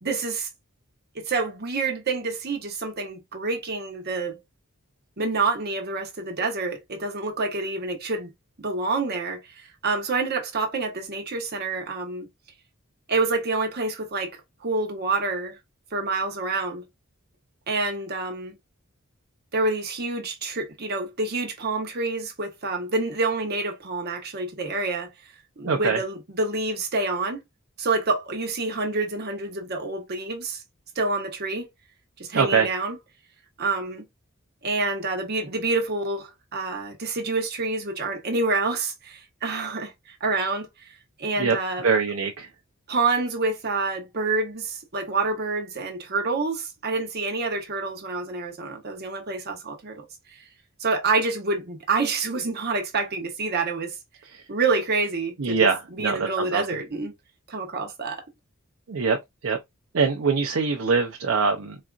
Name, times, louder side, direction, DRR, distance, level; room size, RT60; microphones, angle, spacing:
voice 1, 0.0-0.5 1.1-4.4 5.2-8.3 8.6-12.3 13.1-15.6 15.9-16.8 17.7-18.5 19.5-25.1 25.6-27.4 27.8-30.6 30.9-31.7 32.2-33.0 33.6-34.1 34.6-40.9 41.2-41.8 42.9-50.1 50.8-54.0 54.5-57.1 57.5-58.2, right 3 dB, 50° right, 1.0 m, -27 dB
voice 2, 25.6-26.0 32.3-32.7 41.4-41.6 41.8-42.5 54.3-54.4 55.4-56.8 58.9-59.2 59.4-59.6 59.9-61.8, right 5 dB, 70° right, 0.6 m, -23 dB
4.1 x 2.5 x 2.3 m
head